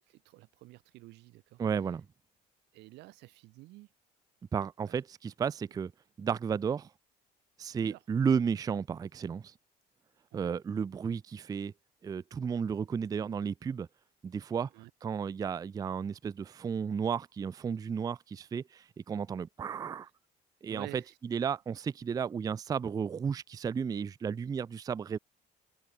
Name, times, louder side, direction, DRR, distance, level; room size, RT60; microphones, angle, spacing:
voice 1, 0.1-1.6 2.7-3.9 4.8-5.0 7.8-8.2 10.3-10.5 14.7-14.9 20.7-21.2, right 20 dB, 85° right, 0.9 m, -50 dB
voice 2, 1.6-2.1 4.5-5.9 6.2-6.9 7.6-9.5 10.3-11.7 12.0-13.9 14.2-14.7 15.0-20.1 20.6-21.0 21.3-25.2, right 6 dB, 20° right, 0.3 m, -33 dB
cardioid pair, 110°, 17 cm